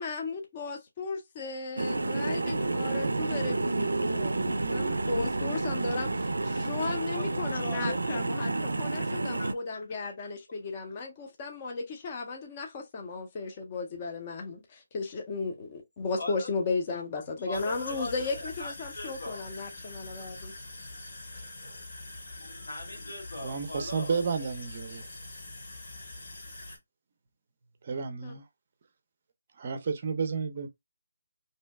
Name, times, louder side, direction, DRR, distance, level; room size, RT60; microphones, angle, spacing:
voice 1, 0.0-20.5 28.2-28.3, left 4 dB, 25° left, 0.6 m, -35 dB
sound 1, 1.8-9.5, right 2 dB, 90° right, 0.4 m, -30 dB
voice 2, 7.1-8.3 9.4-9.5 16.2-16.5 17.4-19.5 22.4-24.2, left 2 dB, 80° left, 1.3 m, -40 dB
sound 2, 17.5-26.8, left 2 dB, 55° left, 1.1 m, -44 dB
voice 3, 21.3-21.8 23.4-25.0 27.8-28.4 29.6-30.7, right 5 dB, 35° right, 0.5 m, -32 dB
2.7 x 2.1 x 3.2 m
hypercardioid pair, 165°, 0 cm